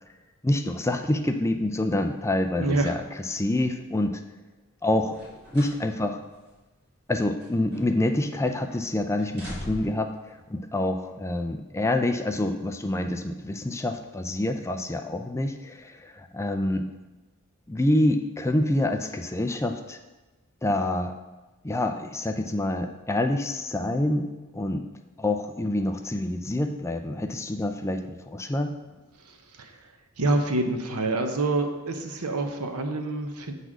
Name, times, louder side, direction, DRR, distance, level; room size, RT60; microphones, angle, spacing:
voice 1, 0.4-4.1 4.8-5.2 5.5-6.2 7.1-10.1 10.5-16.9 17.7-20.0 20.6-21.2 21.6-24.3 24.5-24.8 25.2-28.7, left 1 dB, 15° left, 5 dB, 0.4 m, -27 dB
voice 2, 2.6-3.0 29.6-29.7 30.2-33.5, right 2 dB, 90° right, 5 dB, 1.0 m, -26 dB
sound 1, 5.0-5.8 6.2-6.3 7.1-8.1 8.4-8.8 9.2-10.1 11.0-11.1, left 1 dB, 50° right, 2.6 m, -41 dB
8.0 x 4.1 x 6.1 m, 1.2 s
head